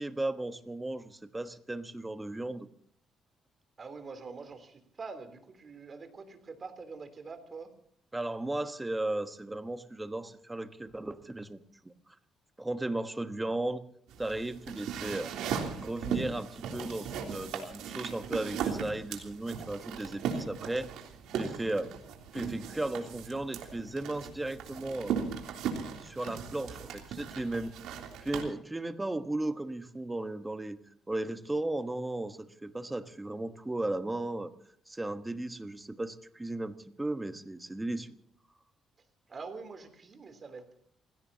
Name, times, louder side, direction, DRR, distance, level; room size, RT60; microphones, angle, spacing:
voice 1, 0.0-2.7 8.1-11.9 12.6-13.8 14.2-15.3 15.8-20.9 21.3-21.9 22.3-25.1 26.0-27.7 28.2-30.8 31.1-34.5 34.9-38.1, right 2 dB, 10° right, 8 dB, 1.3 m, -35 dB
voice 2, 3.8-7.7 39.3-40.8, right 4 dB, 40° right, 8 dB, 3.3 m, -45 dB
sound 1, 14.1-28.4, right 7 dB, 90° right, 3.3 m, -38 dB
29.5 x 17.0 x 2.9 m, 0.63 s
cardioid pair, 105°, 0 cm